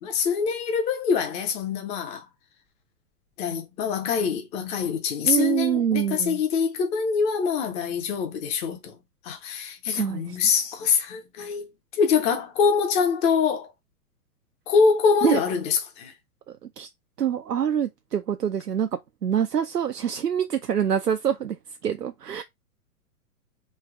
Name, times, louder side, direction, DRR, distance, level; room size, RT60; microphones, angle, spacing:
voice 1, 0.0-2.3 3.4-9.0 9.2-11.7 11.9-13.7 14.7-16.1, left 6 dB, 15° left, 0.6 m, -24 dB
voice 2, 5.2-6.4 9.9-10.4 15.2-15.4 16.8-16.9 17.2-18.9 19.2-21.6 21.8-22.4, right 9 dB, 90° right, 0.6 m, -25 dB
3.3 x 3.1 x 4.5 m
figure-of-eight pair, 110°, 46 cm